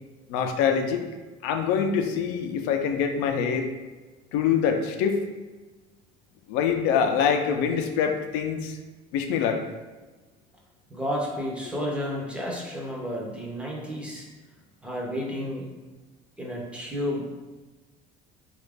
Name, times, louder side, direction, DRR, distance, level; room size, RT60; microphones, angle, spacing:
voice 1, 0.3-1.0 1.4-3.7 4.3-5.2 6.5-8.8 9.1-9.6, left 7 dB, 80° left, 5 dB, 0.4 m, -24 dB
voice 2, 10.9-14.3 14.8-15.7 16.4-17.2, equal, 5° right, -3 dB, 0.5 m, -31 dB
3.9 x 2.4 x 3.4 m, 1.2 s
cardioid pair, 175°, 17 cm